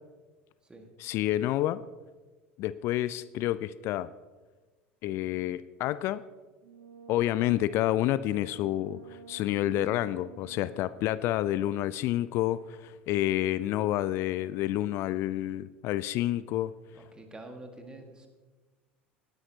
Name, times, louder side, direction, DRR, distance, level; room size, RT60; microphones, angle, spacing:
voice 1, 1.0-1.8 2.6-4.1 5.0-6.2 7.1-16.7, left 14 dB, 45° left, 17 dB, 0.3 m, -29 dB
Brass instrument, 6.6-11.0, right 6 dB, 60° right, 1.6 m, -50 dB
voice 2, 16.9-18.3, right 2 dB, 15° right, 4 dB, 1.8 m, -47 dB
17.5 x 9.9 x 2.9 m, 1.3 s
figure-of-eight pair, 70°, 6 cm